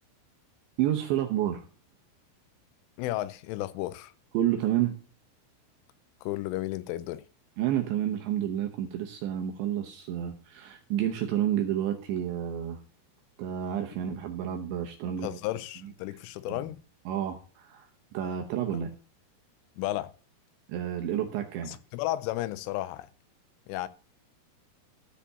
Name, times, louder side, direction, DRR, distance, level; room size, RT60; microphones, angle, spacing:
voice 1, 0.8-1.7 4.3-5.0 7.6-12.8 13.4-15.4 15.8-16.2 16.5-16.6 17.1-17.9 18.1-18.9 20.7-21.8, right 11 dB, 75° right, 3.0 m, -30 dB
voice 2, 3.0-4.1 6.2-7.2 15.2-16.8 19.8-20.1 21.7-23.1 23.7-23.9, left 16 dB, 80° left, 3.0 m, -33 dB
14.0 x 5.0 x 6.9 m
omnidirectional pair, 5.9 m